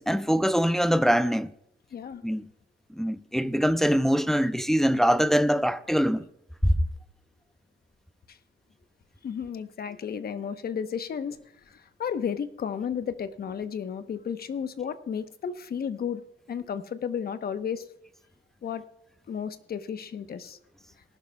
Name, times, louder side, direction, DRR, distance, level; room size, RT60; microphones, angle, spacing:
voice 1, 0.0-1.5 2.2-2.5 2.9-6.3 6.6-6.7, equal, ahead, 0.5 m, -23 dB
voice 2, 1.9-2.2 8.3-8.4 9.2-11.4 11.7-17.8 18.6-18.8 19.3-20.6, left 7 dB, 50° left, 1.0 m, -33 dB
19.0 x 11.5 x 2.3 m
cardioid pair, 90°, 20 cm